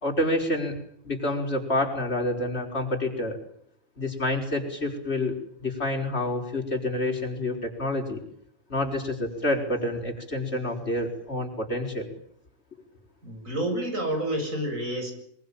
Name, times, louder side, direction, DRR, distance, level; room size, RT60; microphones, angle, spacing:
voice 1, 0.0-0.8 1.0-3.4 4.0-8.2 8.7-12.1, left 1 dB, 50° left, 2 dB, 5.5 m, -28 dB
voice 2, 13.2-15.1, right 1 dB, 80° right, 4 dB, 7.9 m, -29 dB
24.0 x 23.5 x 8.9 m, 0.68 s
omnidirectional pair, 1.4 m